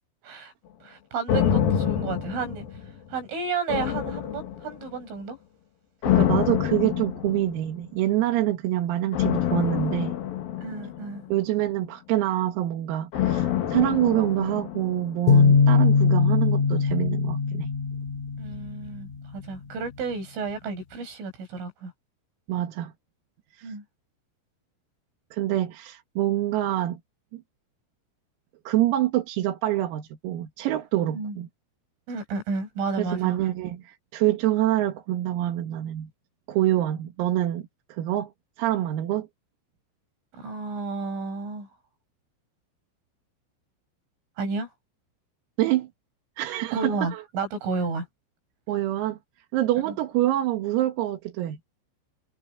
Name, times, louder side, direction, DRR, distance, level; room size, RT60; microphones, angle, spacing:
voice 1, 0.8-2.7 3.1-5.4 10.6-11.2 15.7-15.9 18.4-21.9 23.6-23.8 31.1-31.4 32.1-33.4 40.3-41.7 44.4-44.7 46.7-48.1 49.9-50.0, right 4 dB, 70° right, 9.3 m, -32 dB
sound 1, 1.3-3.2 3.7-5.0 6.0-7.7 9.1-11.5 13.1-15.3 15.6-15.7, left 10 dB, 60° left, 2.8 m, -26 dB
voice 2, 6.0-10.2 11.3-17.7 22.5-22.9 23.6-23.7 25.3-27.0 27.3-27.4 28.7-31.5 33.0-36.1 36.5-38.3 38.6-39.3 45.6-45.9 46.4-47.2 48.7-49.2 49.5-51.6, right 14 dB, 90° right, 4.9 m, -26 dB
sound 2, 15.3-19.0, left 5 dB, 90° left, 5.8 m, -21 dB
omnidirectional pair, 6.0 m